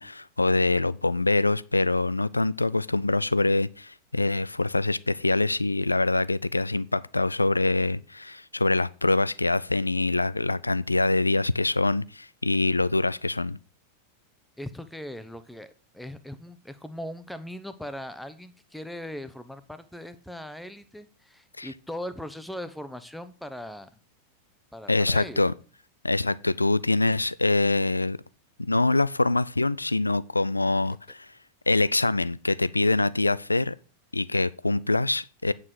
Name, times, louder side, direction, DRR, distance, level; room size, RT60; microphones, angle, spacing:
voice 1, 0.0-13.6 21.6-21.7 24.9-25.5 26.0-28.2 28.6-31.3 31.7-33.7 34.1-35.5, left 2 dB, 80° left, 0.4 m, -24 dB
voice 2, 14.6-23.9 24.7-25.5, left 1 dB, ahead, 0.9 m, -39 dB
9.0 x 6.3 x 6.1 m
figure-of-eight pair, 90°, 0 cm